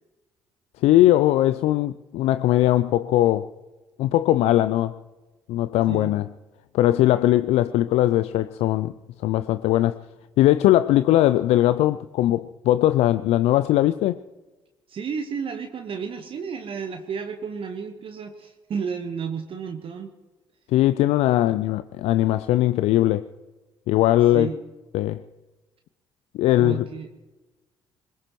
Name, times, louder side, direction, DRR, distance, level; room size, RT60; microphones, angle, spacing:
voice 1, 0.8-3.5 4.0-4.9 5.5-6.3 6.7-8.9 9.2-10.0 10.4-14.2 20.7-23.3 23.9-24.5 24.9-25.2 26.3-26.9, left 14 dB, 60° left, 0.4 m, -20 dB
voice 2, 14.9-20.1 24.3-24.6 26.6-27.1, right 6 dB, 50° right, 1.2 m, -32 dB
21.5 x 20.0 x 3.1 m
figure-of-eight pair, 45°, 12 cm